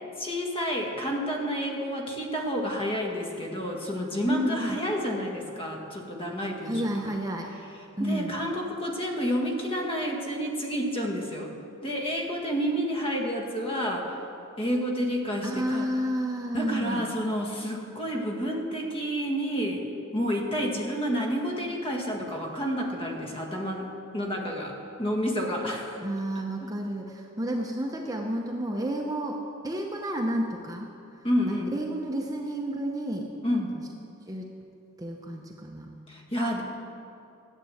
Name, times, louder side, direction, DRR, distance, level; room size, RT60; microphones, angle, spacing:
voice 1, 0.2-6.9 8.0-11.5 11.8-14.2 14.6-15.9 16.5-19.8 20.1-24.7 25.0-26.0 26.6-26.7 31.2-31.7 33.4-33.8 36.1-36.6, equal, 25° left, 0 dB, 1.8 m, -29 dB
voice 2, 4.3-4.8 6.7-7.5 8.0-8.4 15.4-17.1 26.0-29.4 29.6-30.9 31.5-33.3 34.3-34.5 35.0-35.9, equal, 15° right, 1 dB, 0.8 m, -31 dB
12.5 x 8.3 x 7.8 m, 2.7 s
head